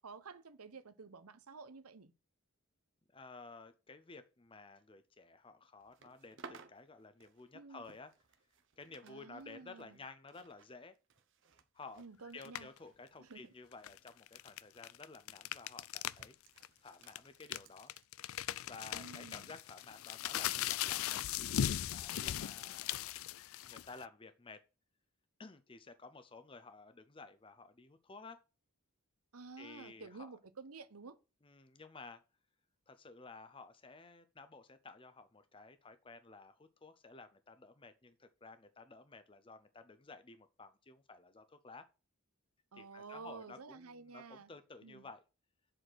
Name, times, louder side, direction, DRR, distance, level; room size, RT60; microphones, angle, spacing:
voice 1, 0.0-2.1 7.5-7.8 9.0-10.0 12.0-12.7 13.2-13.4 18.9-19.5 29.3-31.2 42.7-44.5 44.8-45.1, right 4 dB, 80° right, 0.9 m, -51 dB
voice 2, 3.1-8.1 8.8-10.9 11.7-12.0 12.3-16.4 16.8-17.9 18.6-22.9 23.6-24.6 25.4-28.4 29.6-30.3 31.4-32.2 32.9-41.8 42.8-45.2, left 3 dB, 25° left, 0.6 m, -54 dB
sound 1, 5.8-9.1 9.4-14.4 14.7-14.9 15.7-20.0 20.5-20.7, right 4 dB, 55° right, 1.0 m, -61 dB
sound 2, 12.4-12.8 13.7-16.3 16.6-16.7 17.1-24.0, left 11 dB, 65° left, 0.4 m, -38 dB
7.7 x 4.3 x 6.4 m
head